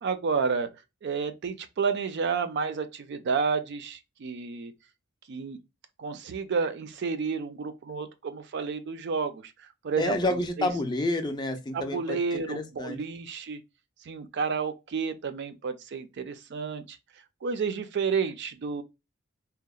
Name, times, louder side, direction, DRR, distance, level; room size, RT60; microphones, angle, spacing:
voice 1, 0.0-0.7 1.0-4.7 5.3-5.6 6.0-10.2 10.6-10.7 11.7-13.6 14.0-17.0 17.4-18.8, right 5 dB, 60° right, 0.4 m, -30 dB
voice 2, 10.0-13.0, left 2 dB, 20° left, 0.4 m, -29 dB
2.8 x 2.0 x 2.2 m
head